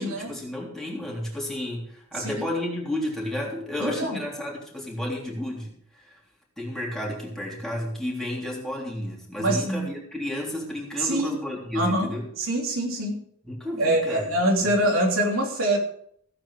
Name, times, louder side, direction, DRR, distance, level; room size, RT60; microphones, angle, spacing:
voice 1, 0.0-6.2 6.6-12.3 13.5-14.3 14.6-14.7, left 1 dB, ahead, -3 dB, 3.4 m, -32 dB
voice 2, 3.8-4.2 9.4-9.9 11.0-11.4 11.7-12.1 12.4-13.2 13.8-15.8, right 1 dB, 75° right, 0 dB, 3.1 m, -24 dB
15.5 x 8.8 x 4.9 m, 0.65 s
head